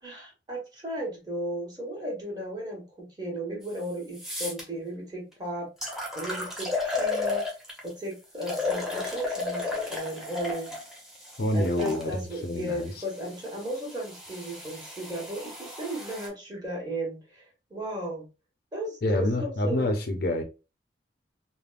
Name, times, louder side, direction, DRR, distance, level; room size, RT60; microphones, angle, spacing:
voice 1, 0.0-7.4 7.8-10.7 11.5-17.4 17.7-18.3 18.7-19.9, right 1 dB, 25° right, 1.1 m, -35 dB
sound 1, 3.6-3.7 4.1-4.6 5.3-5.4 5.8-7.9 8.4-12.0 12.9-16.3, left 3 dB, ahead, 0.8 m, -33 dB
voice 2, 11.4-12.2 12.4-13.0 19.0-20.4, left 1 dB, 60° left, 0.5 m, -27 dB
3.3 x 2.1 x 2.3 m
head